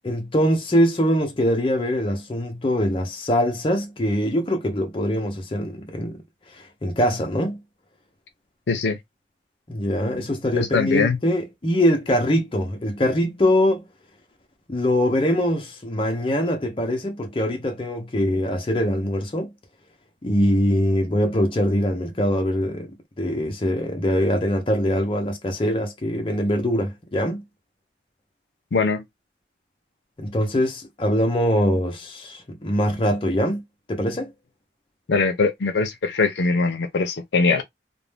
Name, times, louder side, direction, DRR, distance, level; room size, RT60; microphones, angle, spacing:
voice 1, 0.0-6.2 6.6-7.6 9.7-13.9 14.7-19.5 20.2-27.4 30.2-33.6 33.9-34.3, equal, 30° left, 0.6 m, -23 dB
voice 2, 8.7-9.0 10.5-11.2 28.7-29.0 35.1-37.6, left 4 dB, 70° left, 0.5 m, -21 dB
2.6 x 2.0 x 3.2 m
head